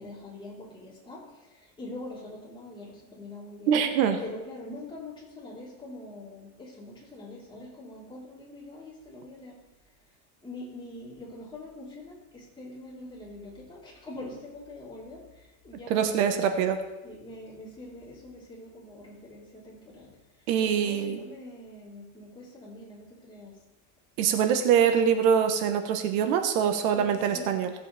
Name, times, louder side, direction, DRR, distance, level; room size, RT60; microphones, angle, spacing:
voice 1, 0.0-3.8 4.2-9.6 10.4-16.4 17.0-20.1 20.6-23.5 26.9-27.6, left 2 dB, 10° left, -7 dB, 4.2 m, -44 dB
voice 2, 3.7-4.2 15.9-16.8 20.5-21.2 24.2-27.7, right 8 dB, 85° right, 7 dB, 1.4 m, -24 dB
17.5 x 8.2 x 3.5 m, 1.0 s
cardioid pair, 150°, 41 cm